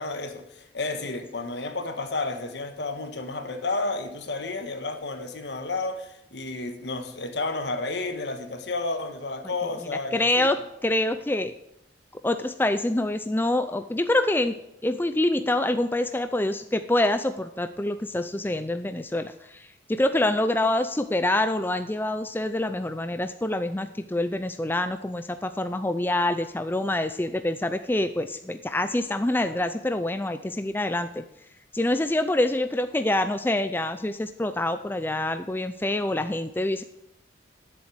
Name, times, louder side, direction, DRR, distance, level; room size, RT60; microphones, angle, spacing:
voice 1, 0.0-10.5, left 3 dB, 65° left, 6 dB, 1.6 m, -31 dB
voice 2, 10.1-10.6 10.8-11.5 12.2-31.2 31.7-36.8, left 1 dB, 10° left, 9 dB, 0.4 m, -26 dB
10.5 x 7.8 x 7.9 m, 0.81 s
head